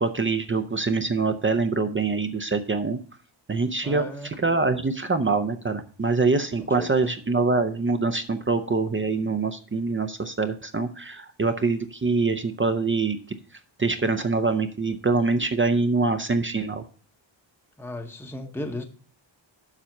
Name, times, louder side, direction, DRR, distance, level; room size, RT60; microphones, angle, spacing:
voice 1, 0.0-3.0 3.5-13.2 13.8-16.8, right 3 dB, 25° right, 0.5 m, -24 dB
voice 2, 3.8-4.4 6.8-7.1 17.8-18.8, left 1 dB, 5° left, 0.8 m, -35 dB
7.4 x 5.6 x 6.3 m
wide cardioid pair, 145°, 46 cm